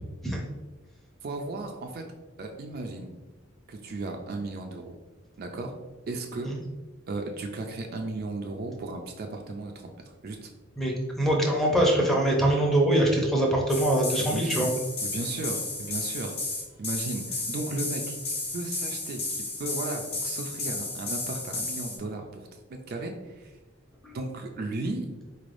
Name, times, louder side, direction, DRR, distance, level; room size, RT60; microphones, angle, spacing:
voice 1, 1.2-2.0 2.4-3.1 3.7-4.9 5.4-5.7 6.1-6.5 7.1-9.9 10.2-10.5 14.2-14.7 15.0-16.3 16.8-18.2 18.5-23.5 24.1-25.1, right 2 dB, 50° right, 3 dB, 0.4 m, -35 dB
voice 2, 10.8-14.7 24.0-24.1, right 1 dB, ahead, -2 dB, 0.6 m, -23 dB
sound 1, 13.7-22.0, left 3 dB, 60° left, 1.3 m, -33 dB
4.1 x 3.3 x 2.5 m, 1.2 s
head